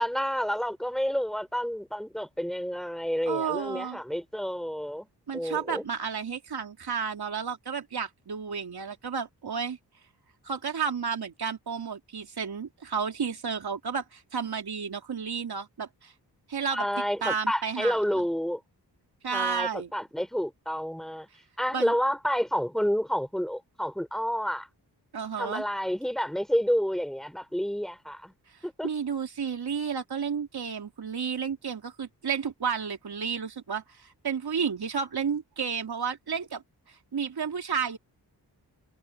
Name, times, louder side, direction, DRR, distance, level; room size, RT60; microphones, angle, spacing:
voice 1, 0.0-5.1 5.3-5.9 16.7-18.6 19.3-21.3 21.6-24.7 25.4-28.3 28.6-28.9, equal, ahead, 3.5 m, -29 dB
voice 2, 3.3-4.0 5.3-9.8 10.4-16.1 16.5-16.8 17.2-18.2 19.2-19.9 21.7-21.9 25.1-25.6 28.8-36.6 37.1-38.0, right 6 dB, 65° right, 3.2 m, -32 dB
cardioid pair, 60°, 40 cm